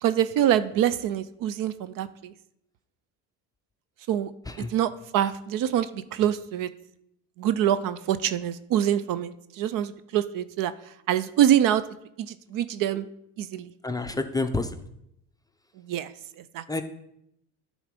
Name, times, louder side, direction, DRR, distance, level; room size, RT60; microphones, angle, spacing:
voice 1, 0.0-2.3 4.1-4.3 4.6-6.7 7.4-10.7 11.1-11.8 12.2-13.1 13.4-13.7 15.8-16.1 16.5-16.6, right 11 dB, 55° right, 14 dB, 0.6 m, -25 dB
voice 2, 13.8-14.7 16.7-16.8, left 2 dB, 10° left, 7 dB, 0.6 m, -28 dB
10.5 x 3.9 x 5.1 m, 0.76 s
supercardioid pair, 95°, 39 cm